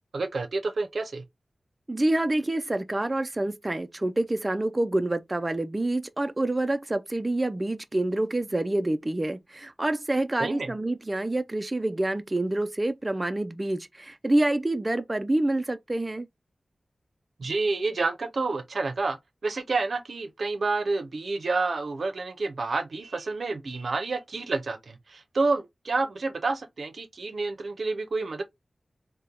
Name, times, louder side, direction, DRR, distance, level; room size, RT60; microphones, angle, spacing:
voice 1, 0.1-1.2 10.4-10.7 17.4-28.4, right 3 dB, 75° right, 0.6 m, -29 dB
voice 2, 1.9-16.3, right 1 dB, 25° right, 0.3 m, -27 dB
5.0 x 2.1 x 2.8 m
wide cardioid pair, 70°, 0 cm